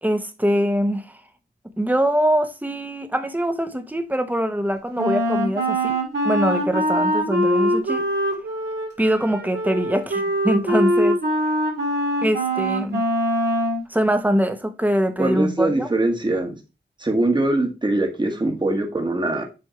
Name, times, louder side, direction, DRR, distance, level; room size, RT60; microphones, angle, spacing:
voice 1, 0.0-1.2 1.8-6.0 6.2-8.1 9.0-11.2 12.2-13.0 13.9-15.9, equal, 10° right, 1.0 m, -23 dB
Wind instrument woodwind instrument, 5.0-13.8, equal, 75° right, 2.4 m, -23 dB
voice 2, 15.2-16.6 17.0-19.4, right 2 dB, 25° right, 1.5 m, -22 dB
7.8 x 3.5 x 4.4 m
wide cardioid pair, 95°, 18 cm